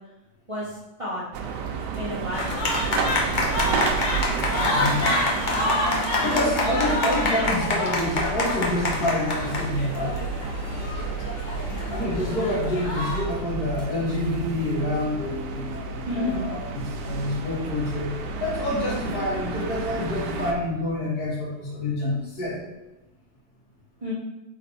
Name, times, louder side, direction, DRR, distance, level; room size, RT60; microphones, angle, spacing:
voice 1, 0.5-1.2 1.9-2.7 4.6-4.8 6.3-6.5 11.7-11.9 16.1-16.5 24.0-24.1, left 1 dB, 35° right, -7 dB, 0.6 m, -32 dB
sound 1, 1.3-20.5, right 4 dB, 85° right, 1.2 m, -31 dB
sound 2, 2.3-13.2, left 2 dB, 55° left, 0.5 m, -27 dB
voice 2, 4.7-5.0 6.2-10.3 11.9-18.1 18.4-22.6, left 1 dB, 70° left, -4 dB, 1.7 m, -27 dB
3.8 x 3.3 x 4.0 m, 1.0 s
omnidirectional pair, 1.7 m